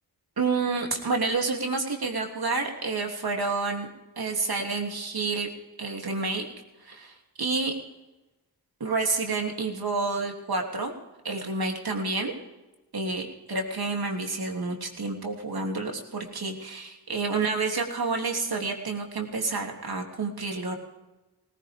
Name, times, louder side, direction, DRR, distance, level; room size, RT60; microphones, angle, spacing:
voice 1, 0.4-3.9 4.2-5.5 5.8-6.5 6.8-7.7 8.8-10.9 11.2-12.3 12.9-20.8, right 3 dB, 60° right, 2 dB, 3.2 m, -29 dB
18.0 x 16.5 x 3.7 m, 1.1 s
cardioid pair, 55°, 42 cm